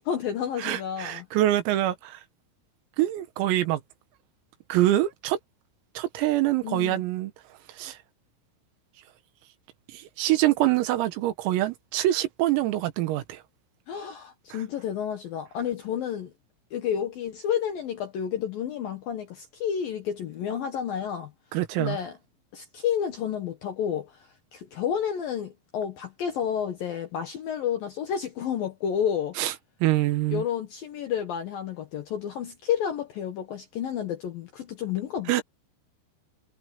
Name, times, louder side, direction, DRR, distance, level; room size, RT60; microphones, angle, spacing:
voice 1, 0.0-1.3 6.6-7.0 13.9-16.3 16.7-21.3 21.8-22.2 22.5-29.4 30.3-35.4, left 8 dB, 70° left, 2.3 m, -30 dB
voice 2, 0.6-2.2 3.0-3.8 4.7-5.4 6.0-7.3 7.8-8.0 9.9-13.4 21.5-22.0 29.4-29.5 29.8-30.4 35.3-35.4, right 14 dB, 85° right, 4.3 m, -25 dB
omnidirectional pair, 5.9 m